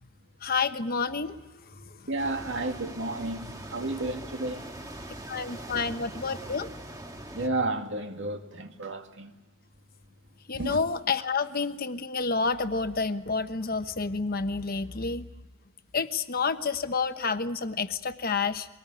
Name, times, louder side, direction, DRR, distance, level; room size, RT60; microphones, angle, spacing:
voice 1, 0.4-1.4 1.8-1.9 5.3-6.7 10.5-15.3 15.9-18.7, left 4 dB, 45° left, 1.1 m, -29 dB
voice 2, 2.1-4.7 7.3-9.3 10.5-10.8, right 2 dB, 60° right, 2.3 m, -32 dB
sound 1, 2.2-7.5, right 1 dB, 15° right, 1.9 m, -42 dB
24.0 x 19.0 x 9.9 m
head